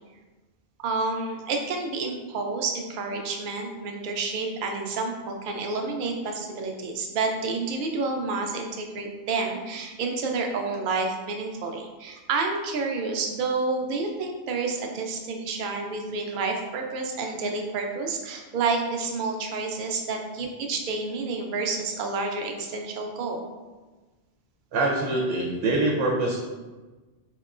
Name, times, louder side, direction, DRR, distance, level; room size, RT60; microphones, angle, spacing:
voice 1, 0.8-23.4, right 4 dB, 55° right, 2 dB, 0.6 m, -29 dB
voice 2, 24.7-26.4, right 2 dB, 90° right, -2 dB, 1.0 m, -24 dB
4.6 x 2.9 x 2.4 m, 1.2 s
omnidirectional pair, 1.2 m